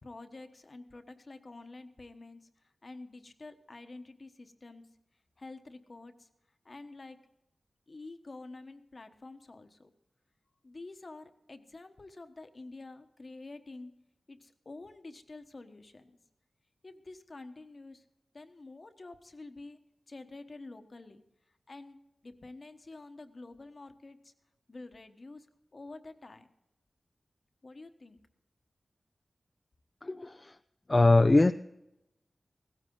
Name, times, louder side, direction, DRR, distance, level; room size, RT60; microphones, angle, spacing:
voice 1, 0.0-4.9 5.4-6.3 6.6-7.2 7.9-9.9 10.6-13.9 14.3-16.1 16.8-18.0 18.3-19.8 20.1-21.2 21.7-24.3 24.7-25.5 25.7-26.5 27.6-28.2, left 2 dB, 50° left, 8 dB, 1.2 m, -48 dB
voice 2, 30.0-30.6 30.9-31.5, left 2 dB, 30° left, 9 dB, 0.4 m, -22 dB
16.5 x 14.5 x 3.9 m, 0.87 s
wide cardioid pair, 70°, 0 cm